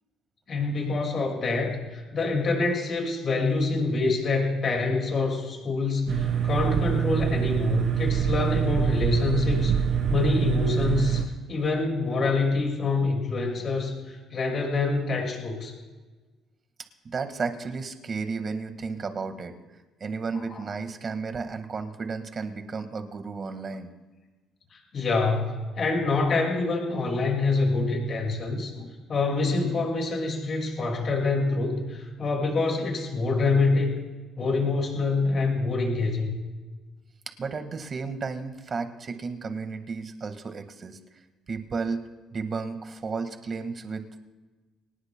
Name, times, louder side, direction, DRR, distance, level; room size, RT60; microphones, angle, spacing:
voice 1, 0.5-9.7 10.1-15.7 20.5-20.6 24.7-34.0 34.4-36.3, left 3 dB, 45° left, 1 dB, 5.3 m, -26 dB
sound 1, 6.1-11.2, right 8 dB, 60° right, 2.6 m, -25 dB
voice 2, 17.0-19.5 20.0-23.9 37.4-41.0 41.5-42.0 42.3-44.2, right 4 dB, 40° right, 7 dB, 1.7 m, -33 dB
24.5 x 19.0 x 2.3 m, 1.3 s
cardioid pair, 110°, 0 cm